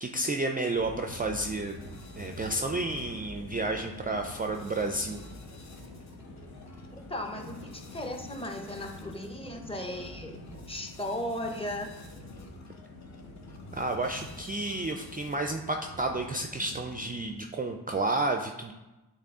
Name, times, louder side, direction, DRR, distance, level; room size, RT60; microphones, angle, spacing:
voice 1, 0.0-1.7 2.2-5.2 13.7-18.7, right 2 dB, 25° right, 4 dB, 0.3 m, -31 dB
sound 1, 0.7-17.4, left 1 dB, 75° left, 1.2 m, -47 dB
sound 2, 1.4-15.6, left 3 dB, 45° left, 0.8 m, -51 dB
voice 2, 6.9-10.4 10.7-11.9, left 1 dB, 15° left, 3 dB, 0.7 m, -36 dB
8.3 x 3.3 x 3.6 m, 1.1 s
wide cardioid pair, 100°, 38 cm